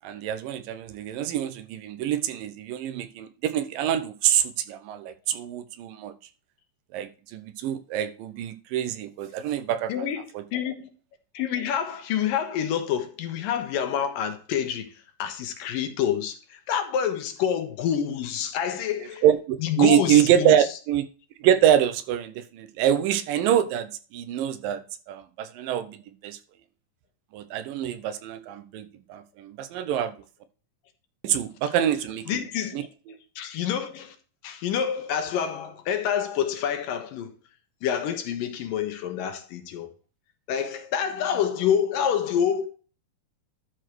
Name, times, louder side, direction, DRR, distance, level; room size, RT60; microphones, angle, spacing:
voice 1, 0.0-6.1 6.9-10.1 10.3-10.4 19.2-21.0 21.4-26.4 27.3-30.2 31.2-32.4 32.7-33.2, right 10 dB, 90° right, 2.6 m, -25 dB
voice 2, 9.9-10.3 10.5-10.9 11.3-14.9 15.2-19.2 19.6-20.5 31.3-31.4 32.3-32.9 33.4-34.2 34.4-37.3 37.8-39.9 40.5-42.7, left 8 dB, 90° left, 2.9 m, -27 dB
12.0 x 5.1 x 4.5 m
omnidirectional pair, 3.8 m